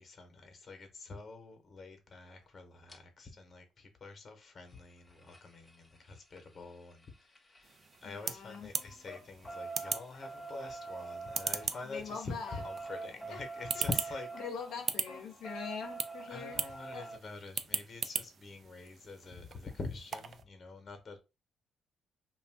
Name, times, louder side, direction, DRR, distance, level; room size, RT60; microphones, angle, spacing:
voice 1, 0.0-14.3 16.3-21.2, left 3 dB, 40° left, 0.8 m, -46 dB
sound 1, 2.9-3.0 4.6-8.2 8.5-17.2 18.9-19.0 19.2-19.3 19.6-19.7, right 3 dB, 15° left, 0.6 m, -46 dB
sound 2, 7.6-20.4, right 6 dB, 55° right, 0.3 m, -41 dB
voice 2, 8.0-8.7 11.8-12.6 13.3-13.4 13.7-13.8 14.4-16.6 16.9-17.1, left 5 dB, 85° left, 0.7 m, -43 dB
2.5 x 2.2 x 3.4 m
cardioid pair, 90°, 0 cm